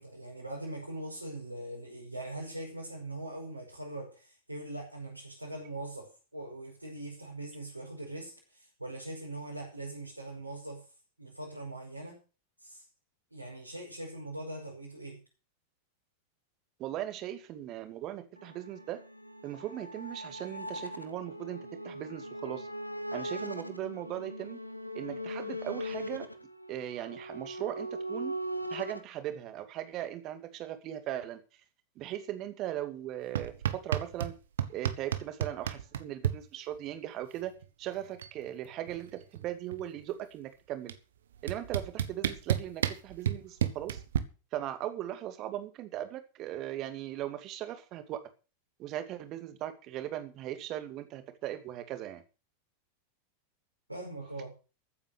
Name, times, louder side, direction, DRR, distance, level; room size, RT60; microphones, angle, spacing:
voice 1, 0.0-10.9 11.2-12.2 12.6-12.8 13.3-15.2 53.9-54.5, right 1 dB, 85° right, -3 dB, 5.7 m, -41 dB
voice 2, 16.8-19.0 19.4-22.7 23.1-24.6 24.9-26.3 26.7-28.3 28.7-31.4 32.0-34.3 34.7-37.5 37.8-40.9 41.4-44.0 44.5-48.2 48.8-52.2, right 12 dB, 35° right, 9 dB, 2.4 m, -38 dB
sound 1, 18.4-29.0, equal, 90° left, 1.3 m, -40 dB
sound 2, 33.4-34.3 34.6-36.4 37.6-37.7 38.0-38.4 38.7-40.0 40.9-41.0 41.5-44.2, right 9 dB, 65° right, 1.3 m, -31 dB
14.5 x 8.8 x 6.7 m, 0.34 s
figure-of-eight pair, 90°, 0 cm